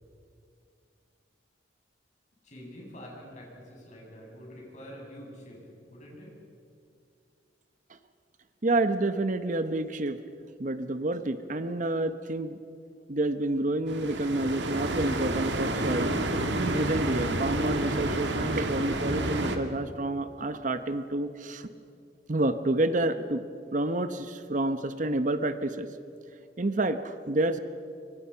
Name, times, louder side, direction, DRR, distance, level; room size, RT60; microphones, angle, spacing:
voice 1, 2.4-6.3, equal, 40° left, -2 dB, 7.7 m, -46 dB
voice 2, 8.6-10.2 10.6-12.6 13.1-16.2 16.6-21.7 22.3-23.4 23.7-25.9 26.6-27.6, right 2 dB, 45° right, 10 dB, 0.9 m, -29 dB
sound 1, 13.9-19.6, right 1 dB, 85° right, 1.9 m, -29 dB
25.0 x 24.0 x 5.7 m, 2.4 s
head